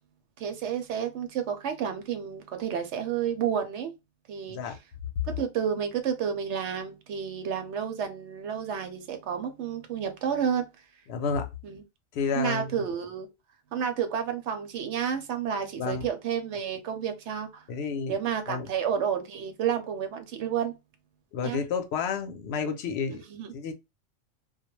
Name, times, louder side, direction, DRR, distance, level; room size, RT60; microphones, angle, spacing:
voice 1, 0.4-3.9 4.3-4.7 5.2-10.6 11.6-11.8 12.3-13.3 13.7-17.6 18.1-20.7 21.4-21.6 23.1-23.5, right 8 dB, 70° right, 0.9 m, -30 dB
voice 2, 4.5-4.8 11.1-11.5 12.1-12.8 15.8-16.1 17.7-18.2 18.5-18.7 21.3-23.2 23.5-23.7, left 5 dB, 60° left, 0.8 m, -30 dB
2.3 x 2.1 x 3.0 m
omnidirectional pair, 1.3 m